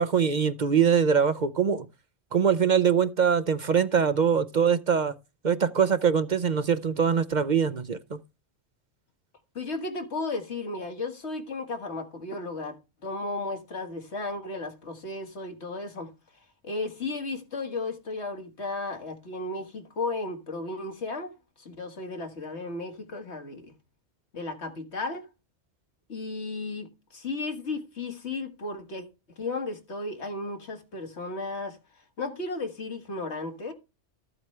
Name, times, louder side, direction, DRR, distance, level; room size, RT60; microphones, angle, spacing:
voice 1, 0.0-1.9 2.3-5.1 5.4-8.0, right 7 dB, 50° right, 0.7 m, -23 dB
voice 2, 9.6-16.1 16.6-21.3 21.6-23.7 24.3-25.3 26.1-29.1 29.4-31.8 32.2-33.7, left 3 dB, 80° left, 2.1 m, -34 dB
13.5 x 7.9 x 3.3 m
omnidirectional pair, 1.1 m